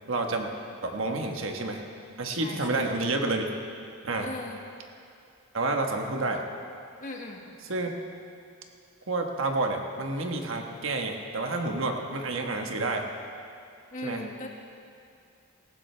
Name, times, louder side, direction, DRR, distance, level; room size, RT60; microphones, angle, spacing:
voice 1, 0.1-0.5 0.8-1.8 2.2-3.4 4.0-4.3 5.5-6.4 7.7-7.9 9.1-13.1 14.0-14.2, right 2 dB, 60° right, 3 dB, 1.2 m, -29 dB
voice 2, 2.4-2.9 4.2-4.6 7.0-7.4 13.9-14.5, left 2 dB, 35° left, 1 dB, 1.3 m, -38 dB
18.5 x 15.0 x 3.3 m, 2.5 s
head